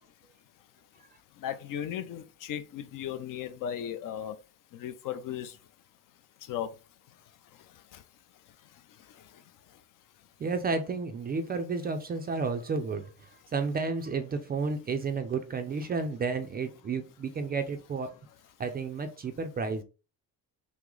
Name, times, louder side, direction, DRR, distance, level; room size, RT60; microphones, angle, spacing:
voice 1, 1.3-4.4 4.7-5.6 6.4-6.8 7.1-8.1 8.4-9.8, left 9 dB, 55° left, 0.6 m, -38 dB
voice 2, 10.4-13.1 13.5-18.1 18.6-19.8, right 4 dB, 25° right, 0.4 m, -31 dB
5.9 x 2.1 x 3.8 m
cardioid pair, 170°, 38 cm